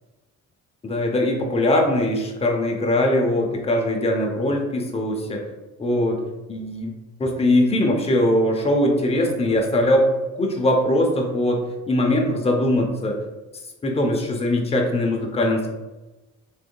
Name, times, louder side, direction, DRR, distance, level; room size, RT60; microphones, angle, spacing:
voice 1, 0.8-5.4 5.8-6.2 6.5-6.9 7.2-11.6 11.9-13.2 13.8-15.7, left 1 dB, 20° left, 1 dB, 0.7 m, -21 dB
3.5 x 3.4 x 2.2 m, 1.1 s
cardioid pair, 90°, 30 cm